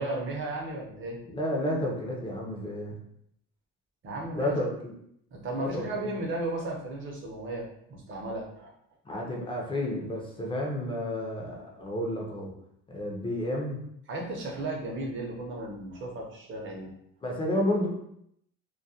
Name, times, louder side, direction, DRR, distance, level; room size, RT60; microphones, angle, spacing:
voice 1, 0.0-1.2 4.0-4.5 5.3-7.6 7.9-8.7 14.1-16.9, right 2 dB, 40° right, -1 dB, 0.7 m, -35 dB
voice 2, 1.3-3.0 4.3-4.9 5.6-6.1 9.1-12.5 12.9-13.8 17.2-17.9, left 1 dB, 20° left, -1 dB, 0.4 m, -31 dB
2.3 x 2.1 x 2.7 m, 0.72 s
cardioid pair, 130°, 30 cm